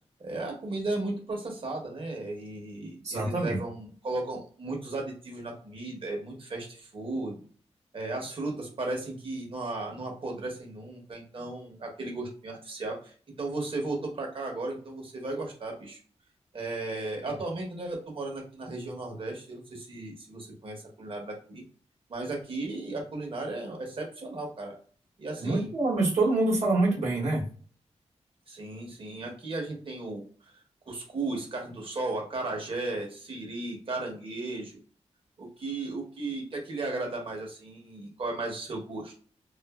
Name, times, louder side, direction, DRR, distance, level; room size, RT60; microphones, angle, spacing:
voice 1, 0.2-7.4 7.9-16.0 16.5-21.6 22.1-24.7 25.2-25.7 28.5-30.5 30.9-34.8 35.4-39.1, right 2 dB, 50° right, 0 dB, 1.0 m, -35 dB
voice 2, 3.0-3.6 25.4-27.5, right 2 dB, 70° right, -5 dB, 1.0 m, -26 dB
2.5 x 2.5 x 2.3 m, 0.43 s
wide cardioid pair, 140°, 12 cm